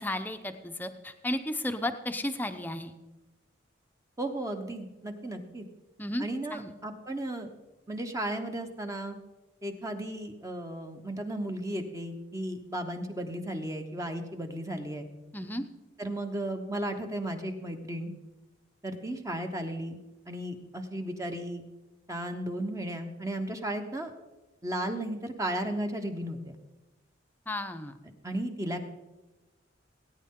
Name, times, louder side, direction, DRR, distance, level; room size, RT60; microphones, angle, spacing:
voice 1, 0.0-2.9 6.0-6.2 6.5-6.7 15.3-15.6 27.5-27.9, left 1 dB, 10° left, 7 dB, 0.7 m, -33 dB
voice 2, 4.2-5.6 6.2-7.5 7.9-9.2 9.6-15.1 16.0-18.1 18.8-20.0 20.3-21.6 22.1-24.1 24.6-26.6 28.2-28.8, right 1 dB, 15° right, 5 dB, 0.9 m, -35 dB
18.0 x 9.4 x 3.7 m, 1.1 s
head